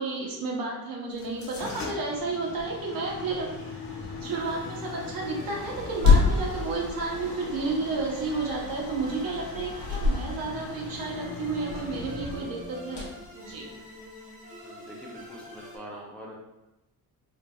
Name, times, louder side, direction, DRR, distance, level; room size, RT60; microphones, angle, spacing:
voice 1, 0.0-3.5 4.2-13.1 13.3-13.7, right 3 dB, 65° right, -1 dB, 0.9 m, -31 dB
sound 1, 1.1-14.1, left 4 dB, 50° left, 0.8 m, -30 dB
sound 2, 4.2-15.8, left 1 dB, 20° right, 0.9 m, -46 dB
voice 2, 14.6-16.4, equal, 5° left, -4 dB, 0.3 m, -44 dB
3.9 x 3.2 x 2.2 m, 0.97 s
cardioid pair, 180°, 38 cm